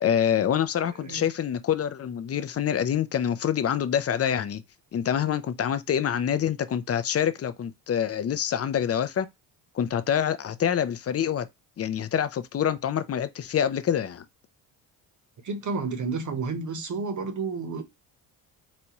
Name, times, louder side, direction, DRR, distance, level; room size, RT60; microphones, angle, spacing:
voice 1, 0.0-4.6 4.9-9.3 9.7-11.5 11.8-14.2, left 9 dB, 35° left, 0.5 m, -26 dB
voice 2, 15.4-17.8, right 4 dB, 40° right, 1.0 m, -31 dB
4.1 x 2.3 x 3.0 m
supercardioid pair, 70°, 44 cm